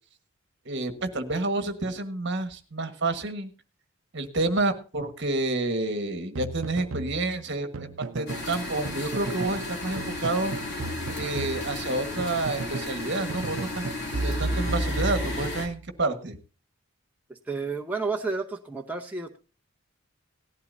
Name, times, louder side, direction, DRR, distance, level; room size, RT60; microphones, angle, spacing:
voice 1, 0.6-3.5 4.1-10.5 11.2-13.8 14.2-16.4, right 2 dB, 50° right, 8 dB, 1.4 m, -29 dB
sound 1, 6.3-8.5 8.8-9.6 10.0-13.0 13.3-15.7, right 2 dB, 70° right, 0.6 m, -33 dB
sound 2, 8.3-15.7, left 2 dB, 50° left, 3.0 m, -34 dB
voice 2, 17.3-19.4, right 4 dB, 5° right, 1 dB, 0.8 m, -31 dB
18.0 x 11.5 x 2.7 m, 0.34 s
head